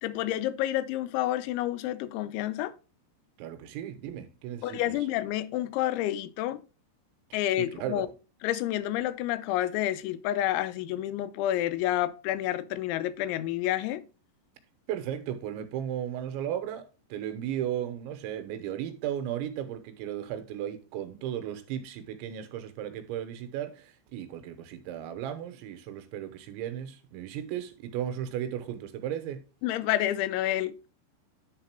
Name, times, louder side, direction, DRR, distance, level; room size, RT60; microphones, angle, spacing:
voice 1, 0.0-2.7 4.6-6.6 7.3-8.1 8.4-14.0 29.6-30.9, left 13 dB, 85° left, 3.0 m, -29 dB
voice 2, 3.4-5.0 7.5-8.1 14.9-29.5, right 10 dB, 80° right, 3.2 m, -35 dB
10.5 x 4.1 x 4.4 m
omnidirectional pair, 5.3 m